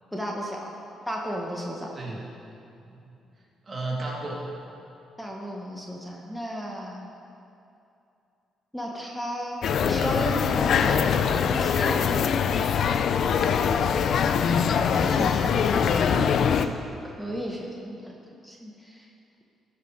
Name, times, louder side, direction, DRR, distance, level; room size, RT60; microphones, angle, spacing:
voice 1, 0.1-0.7 1.1-1.9 5.2-7.1 8.7-12.2 17.2-18.2 18.4-19.1, equal, 5° left, -1 dB, 1.2 m, -33 dB
voice 2, 3.6-4.5 14.3-16.8, equal, 35° right, -3 dB, 2.5 m, -32 dB
sound 1, 9.6-16.7, left 7 dB, 65° left, 0.4 m, -23 dB
13.0 x 5.9 x 4.7 m, 2.7 s
supercardioid pair, 70°, 0 cm